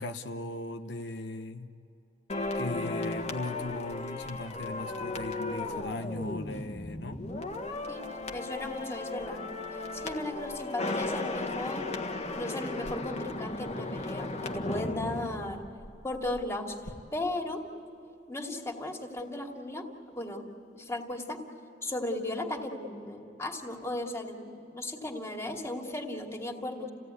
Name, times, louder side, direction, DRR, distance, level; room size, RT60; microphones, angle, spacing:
voice 1, 0.0-1.7 2.5-7.2, left 2 dB, 80° left, 6 dB, 0.9 m, -38 dB
sound 1, 2.3-16.4 16.7-16.9, left 2 dB, 40° left, 1.5 m, -36 dB
voice 2, 8.3-9.4 9.9-11.9 12.4-15.6 16.0-16.8 17.1-17.6 18.3-20.5 20.7-21.4 21.8-26.9, left 2 dB, 15° left, 1 dB, 2.5 m, -36 dB
29.5 x 17.0 x 9.6 m, 2.9 s
head